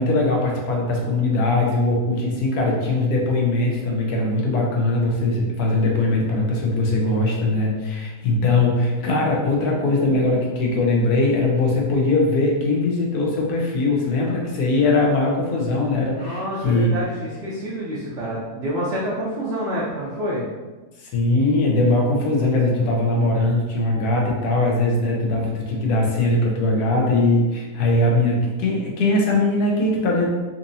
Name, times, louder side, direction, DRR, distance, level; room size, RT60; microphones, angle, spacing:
voice 1, 0.0-16.9 21.0-30.3, left 2 dB, 80° left, -1 dB, 1.3 m, -20 dB
voice 2, 16.2-20.4, equal, 55° right, -7 dB, 0.8 m, -27 dB
4.2 x 2.6 x 2.6 m, 1.2 s
omnidirectional pair, 1.6 m